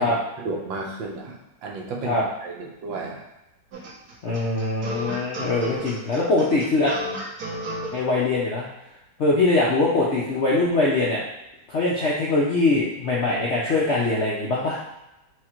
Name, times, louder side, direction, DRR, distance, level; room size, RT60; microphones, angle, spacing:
voice 1, 0.0-3.2, right 3 dB, 80° right, 0 dB, 1.5 m, -33 dB
sound 1, 3.7-7.9, equal, 60° right, 1.4 m, -33 dB
voice 2, 4.2-7.0 7.9-8.7 9.2-11.2 11.7-14.8, left 2 dB, 70° left, -5 dB, 0.6 m, -22 dB
4.7 x 2.4 x 4.3 m, 0.94 s
omnidirectional pair, 2.1 m